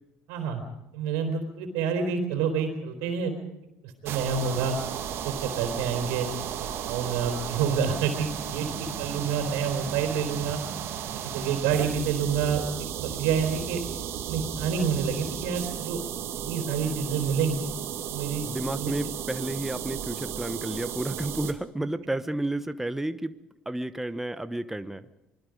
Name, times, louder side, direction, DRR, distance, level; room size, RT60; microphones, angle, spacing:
voice 1, 0.3-0.6 0.9-3.3 4.0-4.8 5.2-6.3 6.8-10.6 11.1-12.6 13.0-13.8 14.3-16.0 16.4-17.7 18.1-18.9, right 6 dB, 70° right, 2 dB, 3.9 m, -28 dB
sound 1, 4.1-21.5, right 9 dB, 55° right, 2.6 m, -34 dB
voice 2, 18.5-23.3 23.7-25.1, right 1 dB, 5° right, 11 dB, 1.0 m, -31 dB
26.0 x 21.0 x 5.2 m, 0.90 s
hypercardioid pair, 70°, 5 cm